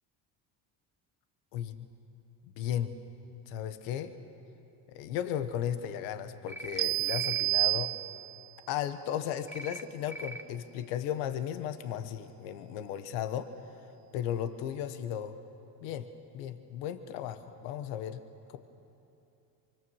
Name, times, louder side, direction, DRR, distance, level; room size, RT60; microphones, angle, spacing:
voice 1, 1.5-1.9 2.6-2.9 3.5-4.1 4.9-7.9 8.7-13.5 14.1-15.3 15.8-16.1 16.3-18.2 18.5-18.6, left 10 dB, 85° left, 9 dB, 1.4 m, -35 dB
sound 1, 6.5-6.8 7.1-7.4 9.5-9.8 10.1-10.4, right 1 dB, 5° right, 1.1 m, -41 dB
sound 2, 6.8-8.5, right 25 dB, 75° right, 0.6 m, -29 dB
25.0 x 24.5 x 7.3 m, 2.8 s
supercardioid pair, 75°, 48 cm